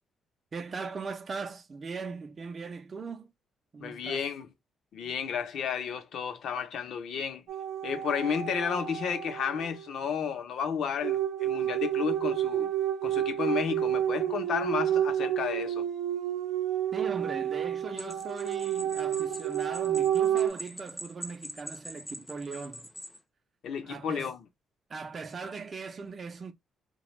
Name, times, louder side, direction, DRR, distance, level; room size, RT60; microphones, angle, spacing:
voice 1, 0.5-3.3 3.7-4.2 16.9-22.9 23.8-24.3 24.9-26.5, right 4 dB, 40° right, 0.5 m, -39 dB
voice 2, 3.8-4.5 4.9-7.4 7.8-12.7 13.0-15.9 23.6-24.4, left 7 dB, 70° left, 0.7 m, -32 dB
sound 1, 7.5-9.9 11.0-20.5, right 11 dB, 80° right, 0.6 m, -30 dB
sound 2, 18.0-23.2, equal, 10° left, 0.6 m, -44 dB
2.4 x 2.2 x 3.0 m
cardioid pair, 90°, 0 cm